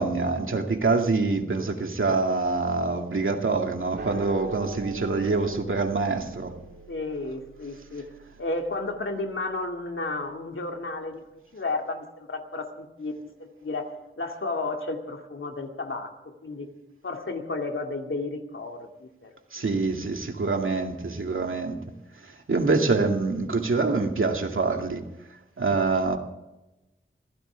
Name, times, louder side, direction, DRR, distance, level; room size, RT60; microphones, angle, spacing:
voice 1, 0.0-6.6 19.5-21.8 22.2-25.1 25.6-26.2, right 3 dB, 75° right, 3 dB, 2.2 m, -25 dB
sound 1, 4.0-10.5, right 3 dB, 55° right, 2.0 m, -43 dB
voice 2, 6.9-8.1 8.4-11.2 11.5-13.9 14.2-16.7 17.0-19.7, left 3 dB, 75° left, 3 dB, 2.3 m, -33 dB
25.5 x 15.5 x 3.5 m, 1.0 s
wide cardioid pair, 75°, 21 cm